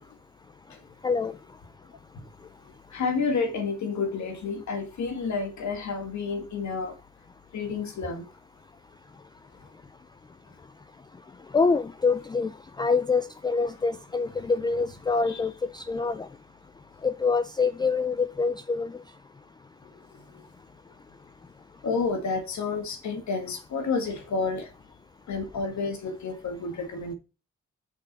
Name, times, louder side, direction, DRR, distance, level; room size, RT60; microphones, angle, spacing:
voice 1, 2.9-6.9 7.5-8.3 14.4-14.5 15.3-15.4 21.8-24.7 25.3-27.1, left 4 dB, 70° left, 1.5 m, -30 dB
voice 2, 11.5-12.5 12.8-15.5 15.9-16.2 17.0-18.9, left 4 dB, 15° left, 0.3 m, -25 dB
6.0 x 5.6 x 3.9 m
cardioid pair, 80°, 29 cm